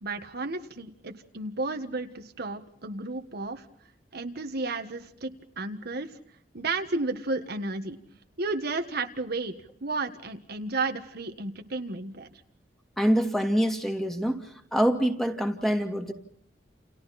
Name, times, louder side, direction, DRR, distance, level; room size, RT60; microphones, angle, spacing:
voice 1, 0.0-3.6 4.1-5.3 5.6-6.2 6.5-8.0 8.4-9.5 9.8-12.4, right 3 dB, 60° right, 6 dB, 1.6 m, -32 dB
voice 2, 13.0-14.4 14.7-16.1, equal, ahead, 4 dB, 2.5 m, -25 dB
29.5 x 29.5 x 4.3 m, 0.71 s
head